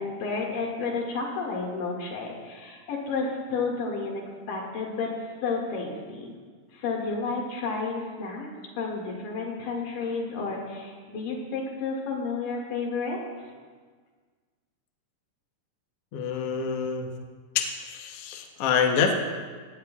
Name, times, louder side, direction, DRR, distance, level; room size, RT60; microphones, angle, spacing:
voice 1, 0.0-5.1 5.4-6.3 6.7-8.5 8.8-13.2, left 4 dB, 80° left, -1 dB, 3.6 m, -31 dB
voice 2, 16.1-17.1 17.5-19.1, left 6 dB, 60° left, 2 dB, 1.7 m, -26 dB
17.5 x 16.5 x 2.4 m, 1.5 s
omnidirectional pair, 3.8 m